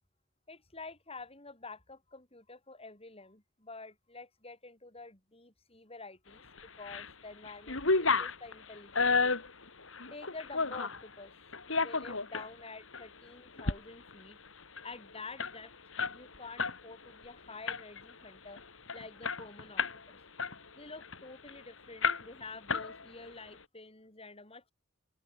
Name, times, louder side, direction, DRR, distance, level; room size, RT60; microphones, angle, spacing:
voice 1, 0.5-6.4 6.7-9.5 10.1-11.3 11.8-14.4 14.8-15.7 16.1-18.6 18.9-20.2 20.7-24.7, left 3 dB, 30° left, 7.8 m, -49 dB
sound 1, 6.6-7.1 7.4-11.0 11.5-12.5 12.9-13.1 13.5-13.8 14.1-14.2 14.5-16.8 17.1-17.3 17.7-18.1 18.6-18.7 18.9-20.0 20.4-21.6 22.0-22.4 22.7-23.3, left 4 dB, 80° left, 3.4 m, -32 dB
open air
head